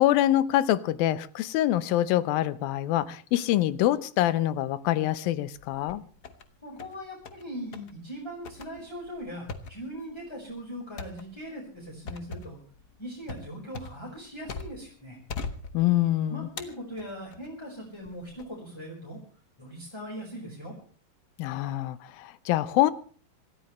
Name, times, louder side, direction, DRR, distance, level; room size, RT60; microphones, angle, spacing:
voice 1, 0.0-6.0 15.7-16.5 21.4-22.9, left 14 dB, 90° left, 16 dB, 2.7 m, -25 dB
sound 1, 5.5-6.5 6.8-7.4 7.7-7.9 8.4-14.9 15.3-16.1 16.6-17.5 18.0-18.4, left 4 dB, 60° left, 1.0 m, -41 dB
voice 2, 6.6-12.6 13.0-15.2 16.3-19.2 19.6-20.8, equal, 5° left, -2 dB, 4.8 m, -40 dB
27.0 x 14.0 x 3.2 m, 0.42 s
omnidirectional pair, 4.0 m